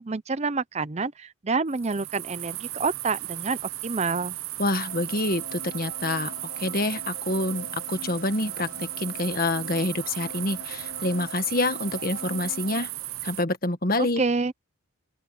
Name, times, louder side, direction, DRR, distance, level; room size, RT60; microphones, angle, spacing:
voice 1, 0.0-4.3 14.0-14.5, right 4 dB, 30° right, 0.6 m, -28 dB
sound 1, 1.7-13.4, right 15 dB, 75° right, 0.8 m, -36 dB
voice 2, 4.6-6.3 6.6-12.9 13.2-14.2, left 2 dB, 40° left, 1.7 m, -27 dB
sound 2, 4.9-12.9, left 3 dB, 75° left, 3.3 m, -44 dB
open air
head